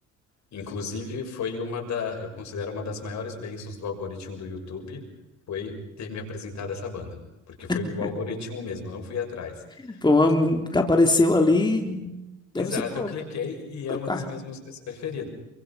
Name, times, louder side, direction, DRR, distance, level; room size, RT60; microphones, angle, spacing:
voice 1, 0.5-5.0 5.5-7.2 7.5-9.6 12.5-15.3, left 5 dB, 65° left, 3 dB, 6.5 m, -33 dB
voice 2, 7.7-8.1 9.8-12.1 12.5-13.1 13.9-14.2, left 2 dB, 15° left, 3 dB, 3.4 m, -22 dB
27.5 x 24.5 x 5.7 m, 0.99 s
cardioid pair, 90°, 30 cm